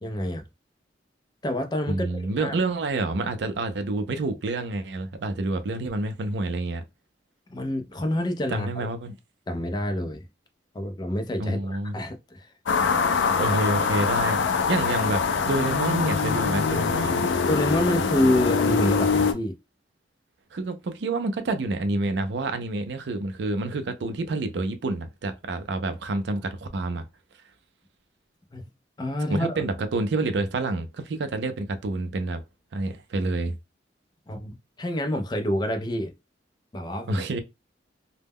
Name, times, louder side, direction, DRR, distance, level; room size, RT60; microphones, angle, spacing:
voice 1, 0.0-0.4 1.4-2.5 7.5-8.9 9.5-10.2 10.7-12.5 17.5-19.6 28.5-28.7 29.0-29.5 34.3-36.1 36.7-37.2, left 1 dB, 25° left, 0.4 m, -27 dB
voice 2, 1.9-6.8 8.5-9.1 11.4-11.9 13.2-14.4 14.7-17.3 20.5-27.1 29.3-32.4 32.7-33.5 37.1-37.4, right 2 dB, 70° right, 0.4 m, -28 dB
sound 1, 12.7-19.3, left 5 dB, 90° left, 0.4 m, -23 dB
2.1 x 2.0 x 3.4 m
head